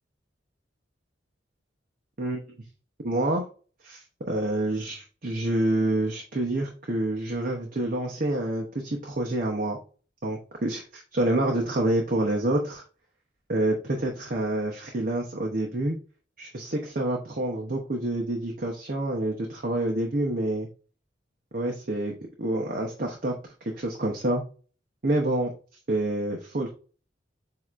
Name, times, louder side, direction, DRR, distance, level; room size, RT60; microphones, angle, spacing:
voice 1, 3.0-3.5 3.8-9.8 10.2-12.8 13.5-16.0 16.4-20.7 21.5-24.4 25.0-25.5 25.9-26.7, right 1 dB, 50° right, 0 dB, 0.8 m, -27 dB
7.7 x 2.8 x 2.5 m, 0.36 s
head